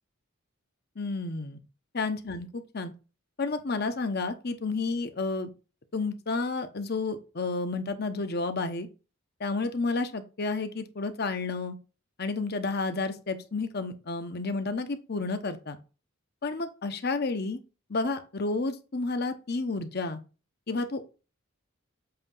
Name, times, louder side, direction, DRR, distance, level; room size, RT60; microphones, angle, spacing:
voice 1, 1.0-1.6 1.9-2.9 3.4-5.5 5.9-8.9 9.4-11.8 12.2-15.8 16.4-17.6 17.9-20.2 20.7-21.0, left 3 dB, 50° left, 0.9 m, -31 dB
7.8 x 2.9 x 5.4 m
head